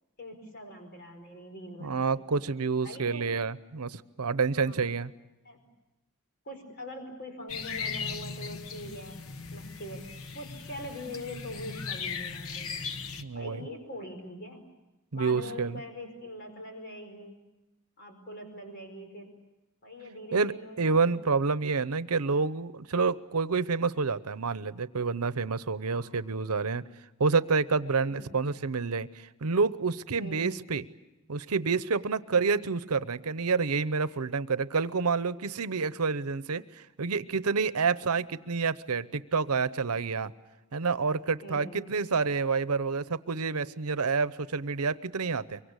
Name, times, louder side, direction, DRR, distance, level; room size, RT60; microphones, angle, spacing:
voice 1, 0.2-2.3 2.8-3.3 4.5-4.7 5.4-5.6 6.4-9.2 9.5-10.1 10.3-12.9 13.3-14.6 15.1-17.4 18.0-19.3 19.8-21.2 25.9-26.1 28.0-28.3 30.2-30.5 41.4-41.8, left 1 dB, 45° left, 5 dB, 4.8 m, -43 dB
voice 2, 1.8-5.1 13.2-13.7 15.1-15.8 20.3-26.8 27.2-30.8 31.3-40.3 40.7-45.6, right 4 dB, 90° right, 15 dB, 0.8 m, -28 dB
sound 1, 7.5-13.2, left 5 dB, 70° left, 1.2 m, -38 dB
24.0 x 23.5 x 8.2 m, 1.0 s
head